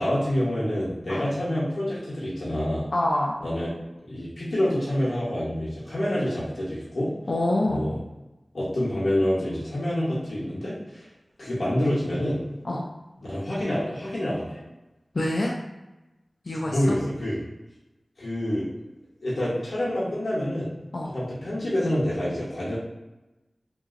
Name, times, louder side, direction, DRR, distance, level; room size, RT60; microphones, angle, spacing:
voice 1, 0.0-2.9 3.4-3.7 4.0-7.1 7.6-8.0 8.5-11.0 11.4-12.4 13.3-14.6 16.6-17.4 18.2-18.7 19.2-20.7 21.1-22.8, left 1 dB, 90° left, -9 dB, 1.0 m, -27 dB
voice 2, 2.9-3.4 7.3-7.9 12.6-12.8 15.1-15.5 16.5-17.0 20.9-21.1, left 1 dB, 65° left, -2 dB, 0.3 m, -25 dB
2.9 x 2.6 x 2.5 m, 1.0 s
wide cardioid pair, 70°, 0 cm